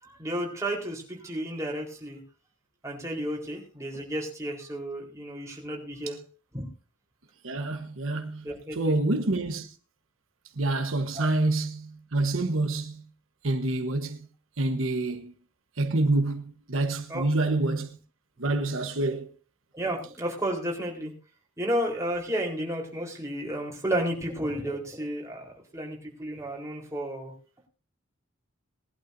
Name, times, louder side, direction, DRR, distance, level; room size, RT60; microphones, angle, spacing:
voice 1, 0.0-2.2 2.8-6.2 6.5-6.7 8.4-8.9 11.1-11.3 17.1-17.3 19.7-21.1 21.6-27.3, right 1 dB, 15° right, 4.1 m, -32 dB
voice 2, 7.4-8.5 8.7-9.7 10.6-13.0 13.4-14.2 14.6-15.3 15.8-18.0 18.4-19.3, right 2 dB, 80° right, 1.2 m, -27 dB
20.0 x 11.5 x 2.7 m
head